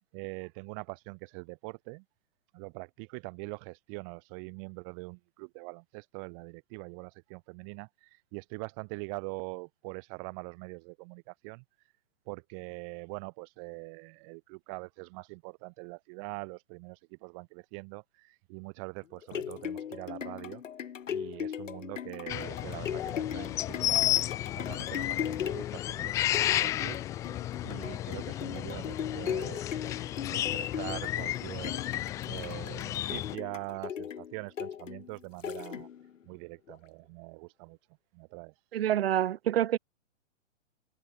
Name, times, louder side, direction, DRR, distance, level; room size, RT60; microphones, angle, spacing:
voice 1, 0.1-2.0 2.5-11.6 12.3-20.6 21.1-27.0 27.2-29.7 30.3-31.8 32.3-35.9 36.3-37.8 38.1-38.5, right 36 dB, 25° right, 3.8 m, -43 dB
sound 1, 19.0-36.2 36.7-36.8, left 9 dB, 80° left, 2.2 m, -39 dB
sound 2, 22.3-33.4, left 13 dB, 10° left, 0.7 m, -32 dB
voice 2, 38.7-39.8, right 11 dB, 50° right, 3.1 m, -27 dB
hypercardioid pair, 165°, 38 cm